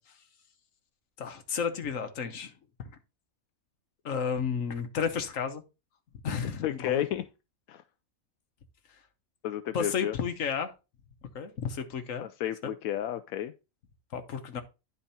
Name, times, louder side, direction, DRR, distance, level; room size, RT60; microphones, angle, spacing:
voice 1, 1.2-2.5 2.8-2.9 4.0-5.6 6.2-7.0 9.7-10.7 11.3-12.3 14.1-14.6, left 6 dB, 70° left, 1.4 m, -32 dB
voice 2, 6.6-7.2 7.7-7.8 9.4-10.1 12.2-13.5, left 11 dB, 90° left, 1.0 m, -32 dB
10.5 x 4.5 x 4.2 m
omnidirectional pair, 1.4 m